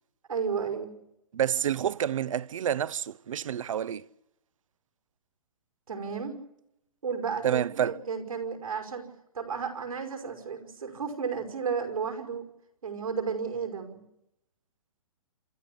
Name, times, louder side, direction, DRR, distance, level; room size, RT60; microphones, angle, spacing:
voice 1, 0.3-1.0 5.9-6.4 7.0-9.1 9.3-12.5 12.8-14.0, right 6 dB, 85° right, 5.6 m, -33 dB
voice 2, 1.3-4.0 7.4-8.0, right 9 dB, 65° right, 0.8 m, -28 dB
27.5 x 13.0 x 8.6 m
hypercardioid pair, 135°, 18 cm